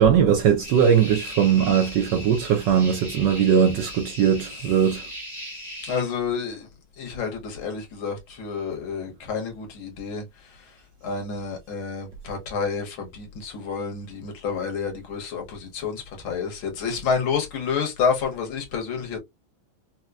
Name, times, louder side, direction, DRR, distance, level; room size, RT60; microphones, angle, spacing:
voice 1, 0.0-5.0, right 8 dB, 70° right, 1.1 m, -20 dB
sound 1, 0.6-6.0, left 1 dB, 20° right, 0.9 m, -38 dB
voice 2, 5.8-6.7 7.0-10.2 11.0-19.2, left 5 dB, 70° left, 1.8 m, -29 dB
4.3 x 2.2 x 2.3 m
omnidirectional pair, 2.4 m